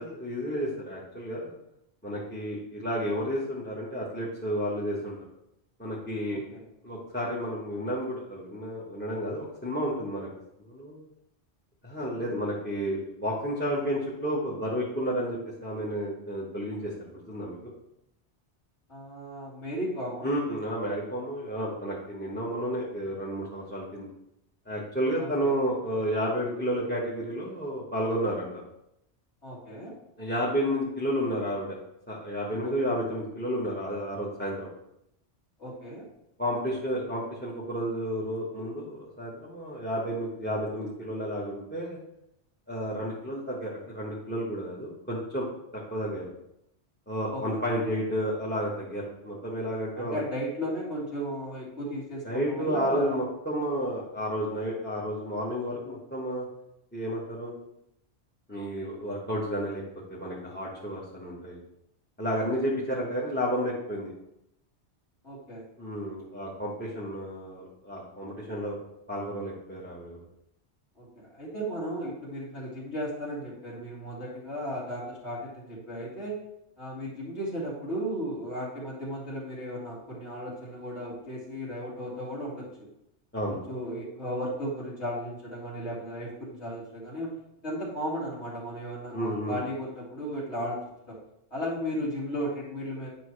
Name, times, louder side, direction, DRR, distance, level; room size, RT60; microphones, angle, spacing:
voice 1, 0.0-1.5 2.0-5.1 5.8-6.4 6.8-10.3 10.6-11.0 11.8-17.7 20.2-24.1 24.7-28.6 30.2-31.8 32.1-34.7 36.4-42.0 42.7-45.4 45.9-46.3 47.1-50.2 52.2-56.4 56.9-57.5 58.5-59.8 60.1-61.6 62.2-64.1 65.8-68.8 69.1-70.2 83.3-83.6 89.1-89.6, equal, 10° left, -5 dB, 1.3 m, -31 dB
voice 2, 6.3-6.7 18.9-20.4 25.2-25.5 29.4-29.9 32.6-33.0 35.6-36.1 47.3-47.6 49.9-53.2 65.2-65.6 71.0-76.4 76.8-82.9 83.7-87.3 87.6-90.8 91.1-91.2 91.5-93.1, equal, 80° left, -7 dB, 2.4 m, -35 dB
9.2 x 5.4 x 3.2 m, 0.81 s
omnidirectional pair, 1.1 m